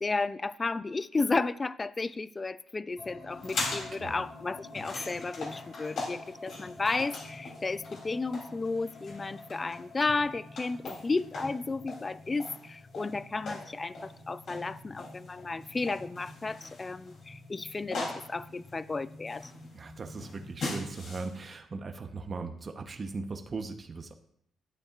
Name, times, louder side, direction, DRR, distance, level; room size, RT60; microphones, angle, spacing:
voice 1, 0.0-19.5, left 3 dB, 25° left, 16 dB, 0.4 m, -33 dB
sound 1, 3.0-20.6, left 2 dB, 45° left, 2.1 m, -50 dB
sound 2, 3.3-21.5, left 3 dB, 65° left, 3.1 m, -41 dB
voice 2, 3.9-4.2 19.7-24.1, right 3 dB, 35° right, 5 dB, 0.9 m, -39 dB
12.0 x 8.6 x 2.5 m, 0.71 s
cardioid pair, 90°, 0 cm